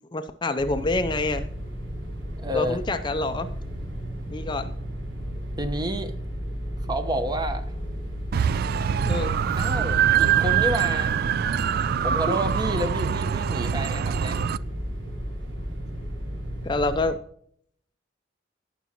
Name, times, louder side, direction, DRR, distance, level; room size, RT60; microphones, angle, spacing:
voice 1, 0.1-1.5 2.5-3.5 4.3-4.7 9.1-9.3 11.7-11.9 12.3-12.4 16.6-17.2, left 2 dB, 25° left, 9 dB, 0.5 m, -27 dB
sound 1, 0.6-17.1, equal, 90° right, 4.2 m, -34 dB
voice 2, 2.4-2.8 5.6-6.1 6.9-7.7 9.6-11.2 12.0-14.4, equal, 20° right, 8 dB, 0.9 m, -29 dB
sound 2, 8.3-14.6, right 8 dB, 55° right, 0.3 m, -24 dB
17.0 x 6.0 x 2.9 m, 0.64 s
head